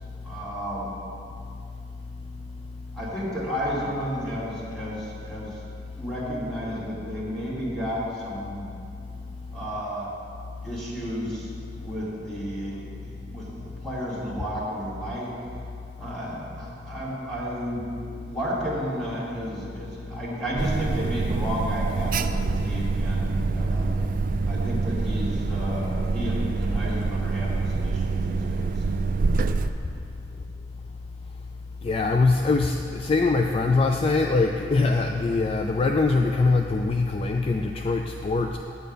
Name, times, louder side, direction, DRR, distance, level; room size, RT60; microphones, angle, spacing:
voice 1, 0.2-0.9 2.9-5.6 6.0-8.7 9.5-10.1 10.6-11.5 11.8-15.3 16.0-23.9 24.4-28.8 30.3-30.4, equal, 5° left, -8 dB, 2.3 m, -32 dB
Alarm, 20.6-29.7, right 3 dB, 50° right, 0.3 m, -26 dB
voice 2, 31.8-38.6, left 3 dB, 30° left, 3 dB, 0.3 m, -23 dB
8.6 x 7.9 x 5.2 m, 2.5 s
head